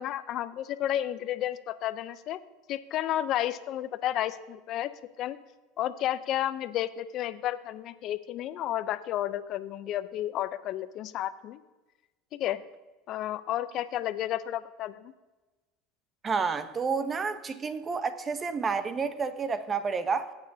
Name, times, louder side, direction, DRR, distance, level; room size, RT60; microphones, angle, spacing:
voice 1, 0.0-2.4 2.7-4.9 5.2-5.4 5.8-11.6 12.4-12.6 13.1-15.1, left 12 dB, 50° left, 0.6 m, -32 dB
voice 2, 16.2-20.3, right 5 dB, 30° right, 0.9 m, -30 dB
17.5 x 8.9 x 2.8 m
hypercardioid pair, 90°, 0 cm